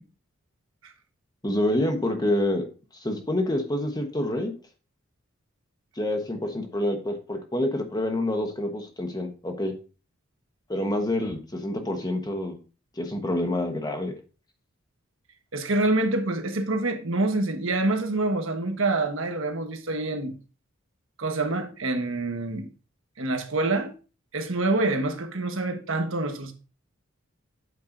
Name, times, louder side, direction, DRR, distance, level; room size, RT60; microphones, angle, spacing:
voice 1, 1.4-2.6 3.0-4.5 6.0-9.7 10.7-12.6 13.0-14.1, left 1 dB, 20° left, 1.1 m, -27 dB
voice 2, 15.5-20.4 21.2-22.7 23.2-23.9 24.3-26.5, right 2 dB, 70° right, 1.3 m, -26 dB
8.3 x 7.7 x 2.6 m
head